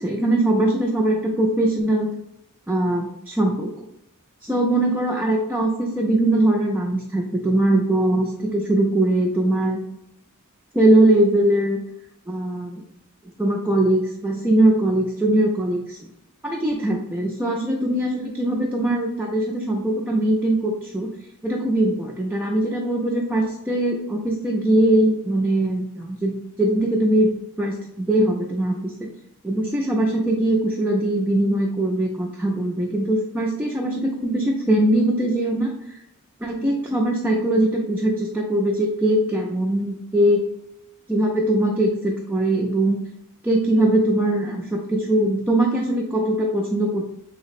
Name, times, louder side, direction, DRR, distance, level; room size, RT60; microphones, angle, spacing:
voice 1, 0.0-2.1 2.7-3.7 4.4-9.8 10.7-11.8 12.3-12.8 13.4-16.0 16.4-21.1 21.4-29.1 29.4-36.0 36.4-40.4 41.1-43.0 43.4-47.0, right 1 dB, 10° right, -1 dB, 0.3 m, -21 dB
3.2 x 2.0 x 4.1 m, 0.80 s
head